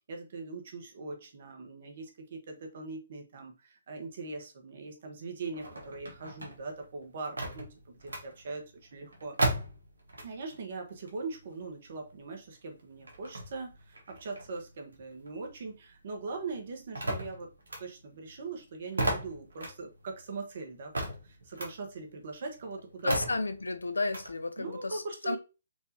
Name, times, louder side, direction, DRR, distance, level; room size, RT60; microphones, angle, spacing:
voice 1, 0.1-9.4 10.2-17.5 17.8-23.1 24.6-25.4, right 3 dB, 55° right, 1.2 m, -41 dB
sound 1, 5.4-10.6 10.9-15.8 16.1-24.3, right 1 dB, 85° right, 1.3 m, -37 dB
voice 2, 23.0-25.4, left 3 dB, 90° left, 0.5 m, -32 dB
4.6 x 2.7 x 2.8 m
hypercardioid pair, 140°, 0 cm